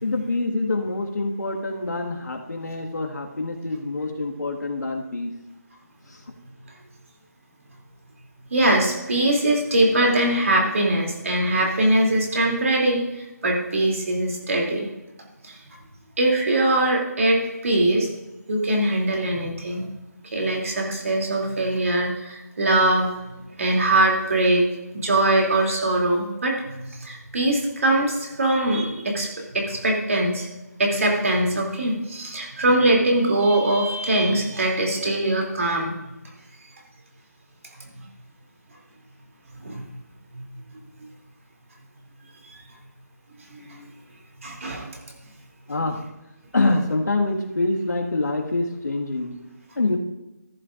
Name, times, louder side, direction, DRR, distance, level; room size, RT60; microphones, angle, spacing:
voice 1, 0.0-5.3 6.1-6.2 45.7-46.0 46.5-49.3 49.8-50.0, left 2 dB, 80° left, 2 dB, 1.8 m, -25 dB
voice 2, 8.5-14.9 15.4-15.6 16.2-18.1 18.5-19.9 20.3-23.1 23.6-24.7 25.0-30.5 30.8-36.0 39.6-39.8 40.3-40.4 43.5-43.9 44.4-44.9, right 1 dB, 50° right, 0 dB, 2.9 m, -22 dB
14.0 x 12.0 x 2.5 m, 1.0 s
figure-of-eight pair, 170°, 9 cm